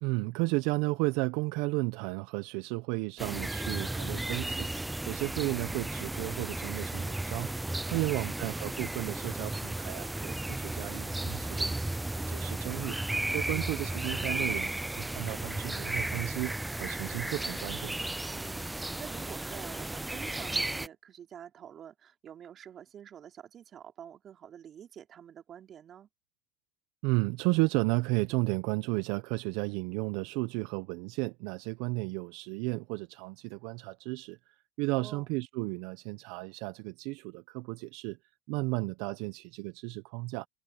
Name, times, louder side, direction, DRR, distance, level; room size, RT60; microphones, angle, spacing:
voice 1, 0.0-4.7 5.1-7.5 7.8-11.8 12.1-13.0 13.3-16.5 16.8-18.1 27.0-38.2 38.5-40.5, right 24 dB, 70° right, 0.8 m, -33 dB
sound 1, 3.2-20.9, right 2 dB, 10° right, 0.4 m, -34 dB
voice 2, 7.8-8.2 13.4-13.8 18.3-26.1 34.9-35.3, right 9 dB, 45° right, 3.7 m, -48 dB
supercardioid pair, 90°, 0 cm